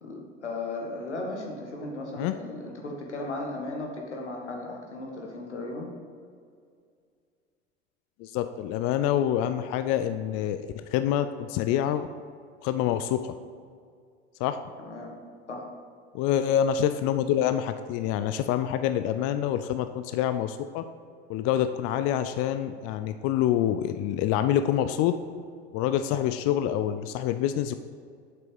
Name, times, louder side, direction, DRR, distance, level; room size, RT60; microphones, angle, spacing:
voice 1, 0.0-5.9 14.8-15.2 15.5-15.6, left 2 dB, 85° left, 0 dB, 1.6 m, -36 dB
voice 2, 8.2-12.1 12.6-13.3 14.4-14.6 16.1-20.8 21.3-25.1 25.7-27.8, left 10 dB, 45° left, 10 dB, 0.5 m, -26 dB
7.6 x 6.0 x 5.3 m, 2.2 s
figure-of-eight pair, 70°, 34 cm